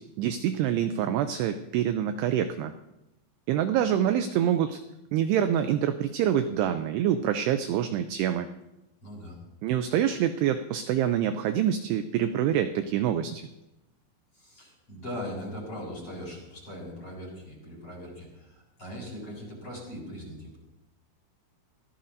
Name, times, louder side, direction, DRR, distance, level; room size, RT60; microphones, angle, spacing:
voice 1, 0.0-2.7 3.5-4.8 5.1-8.5 9.6-13.4, right 10 dB, 85° right, 8 dB, 2.3 m, -26 dB
voice 2, 9.0-9.4 14.4-20.6, equal, 30° left, -3 dB, 7.0 m, -40 dB
24.0 x 17.0 x 2.7 m, 0.93 s
omnidirectional pair, 5.4 m